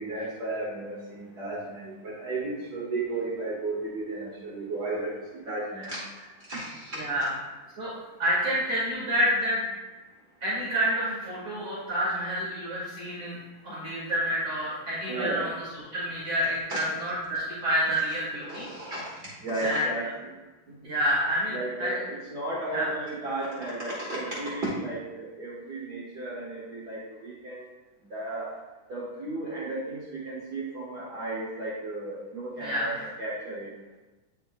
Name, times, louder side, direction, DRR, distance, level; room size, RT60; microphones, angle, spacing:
voice 1, 0.0-7.0 15.1-15.5 16.7-16.8 18.4-20.1 21.5-27.6 28.1-28.5 28.9-32.9 33.2-33.7, right 2 dB, 70° right, -6 dB, 0.9 m, -34 dB
voice 2, 6.9-7.3 7.8-7.9 8.2-9.7 10.4-13.4 13.6-18.7 19.6-19.9 20.8-22.0 22.7-22.9 32.6-33.0, equal, 50° right, -10 dB, 2.9 m, -28 dB
9.5 x 6.9 x 2.3 m, 1.1 s
omnidirectional pair, 3.9 m